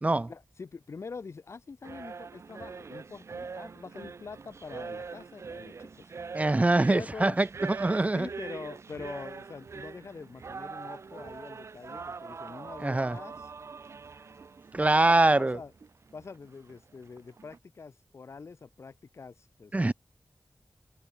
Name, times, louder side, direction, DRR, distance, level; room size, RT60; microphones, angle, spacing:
voice 1, 0.3-6.1 6.9-7.4 8.1-13.5 14.8-15.7 16.1-19.9, left 4 dB, 80° left, 6.4 m, -45 dB
sound 1, 1.8-17.6, right 5 dB, 85° right, 1.7 m, -43 dB
voice 2, 6.3-8.3 12.8-13.2 14.7-15.6 19.7-19.9, right 2 dB, 30° right, 1.6 m, -24 dB
wide cardioid pair, 95°, 5 cm